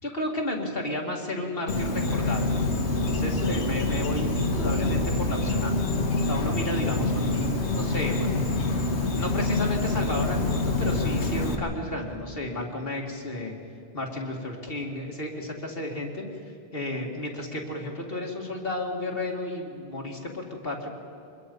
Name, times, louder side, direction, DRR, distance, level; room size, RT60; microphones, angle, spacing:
voice 1, 0.0-2.5 3.0-5.7 6.3-8.5 9.2-13.5 13.9-16.3 16.7-20.9, left 1 dB, 55° left, 0 dB, 2.5 m, -32 dB
Insect, 1.7-11.6, left 2 dB, 75° left, 1.9 m, -26 dB
24.0 x 22.0 x 5.4 m, 2.6 s
omnidirectional pair, 1.1 m